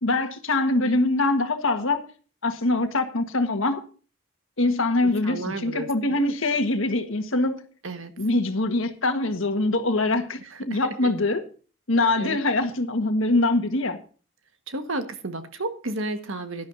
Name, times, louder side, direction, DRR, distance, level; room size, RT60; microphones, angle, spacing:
voice 1, 0.0-2.0 2.4-3.8 4.6-7.6 8.2-11.4 11.9-14.0, left 2 dB, 70° left, 7 dB, 1.5 m, -23 dB
voice 2, 5.0-6.3 7.8-8.1 10.4-11.1 12.2-12.4 14.7-16.7, right 2 dB, 70° right, 8 dB, 1.6 m, -33 dB
17.0 x 11.5 x 2.7 m, 0.39 s
head